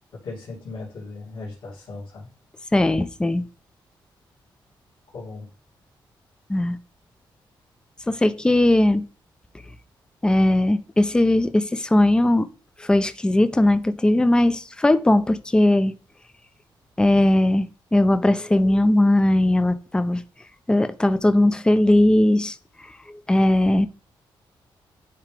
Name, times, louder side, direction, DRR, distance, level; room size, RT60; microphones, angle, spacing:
voice 1, 0.2-2.3 5.1-5.5, left 3 dB, 65° left, 2.7 m, -37 dB
voice 2, 2.7-3.4 6.5-6.8 8.1-9.0 10.2-12.5 12.8-15.9 17.0-20.2 20.7-22.5 23.3-23.9, left 1 dB, 10° left, 0.5 m, -19 dB
10.5 x 3.6 x 3.4 m
cardioid pair, 115°, 9 cm